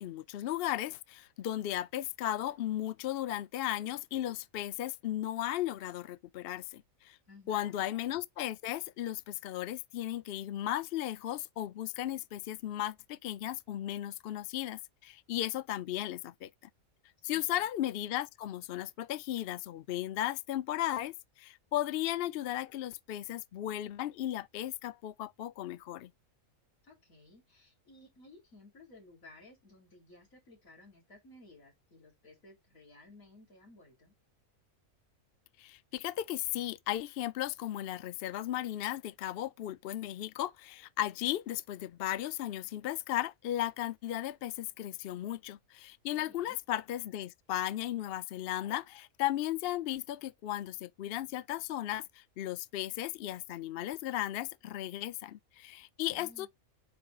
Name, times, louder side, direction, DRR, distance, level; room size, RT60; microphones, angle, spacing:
voice 1, 0.0-7.2 7.5-16.5 17.2-26.1 35.6-56.5, left 13 dB, 60° left, 0.6 m, -36 dB
voice 2, 7.3-7.8 17.3-17.7 26.8-34.2 46.2-46.6 56.1-56.5, left 2 dB, 80° left, 3.6 m, -57 dB
7.7 x 5.2 x 2.4 m
omnidirectional pair, 1.4 m